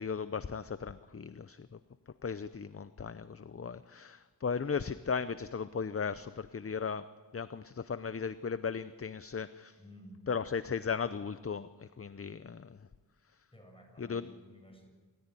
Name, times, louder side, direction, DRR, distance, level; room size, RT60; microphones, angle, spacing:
voice 1, 0.0-1.8 2.2-7.0 7.3-9.8 10.3-12.8 14.0-14.3, left 6 dB, 40° left, 14 dB, 0.6 m, -36 dB
voice 2, 9.8-10.2 13.5-14.9, equal, 15° left, 2 dB, 7.7 m, -54 dB
28.0 x 14.5 x 9.9 m, 1.5 s
wide cardioid pair, 75°, 37 cm